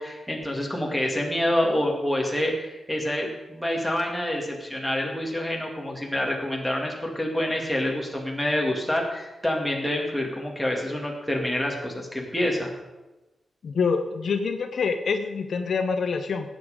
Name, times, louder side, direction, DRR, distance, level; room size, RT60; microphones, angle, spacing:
voice 1, 0.0-12.7, left 1 dB, ahead, -1 dB, 2.4 m, -27 dB
voice 2, 13.6-16.5, left 5 dB, 65° left, 7 dB, 0.9 m, -26 dB
18.0 x 8.0 x 5.1 m, 1.1 s
wide cardioid pair, 150°, 0 cm